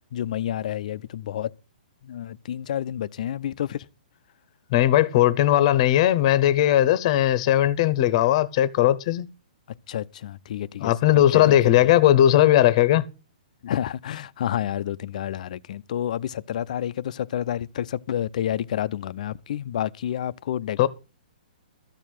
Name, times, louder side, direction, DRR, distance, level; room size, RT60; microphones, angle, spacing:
voice 1, 0.1-1.5 2.0-3.9 9.9-10.9 11.3-11.9 13.6-20.9, left 11 dB, 55° left, 0.6 m, -29 dB
voice 2, 4.7-9.3 10.8-13.0 20.8-20.9, left 12 dB, 40° left, 0.9 m, -18 dB
13.5 x 4.7 x 8.9 m
hypercardioid pair, 155°, 5 cm